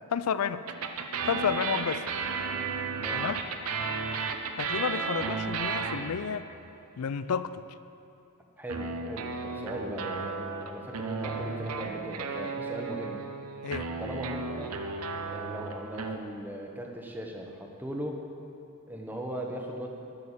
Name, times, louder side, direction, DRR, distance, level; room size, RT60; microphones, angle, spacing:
voice 1, 0.1-0.7 1.2-2.0 3.1-3.4 4.6-6.5 7.0-7.6 13.6-13.9, left 7 dB, 85° left, 14 dB, 0.4 m, -30 dB
sound 1, 0.7-6.4 8.7-16.2, right 4 dB, 80° right, 0.8 m, -34 dB
voice 2, 8.6-13.2 14.0-14.7 15.2-18.2 18.9-19.9, right 1 dB, 10° right, 1 dB, 1.0 m, -38 dB
11.0 x 6.6 x 8.4 m, 2.7 s
head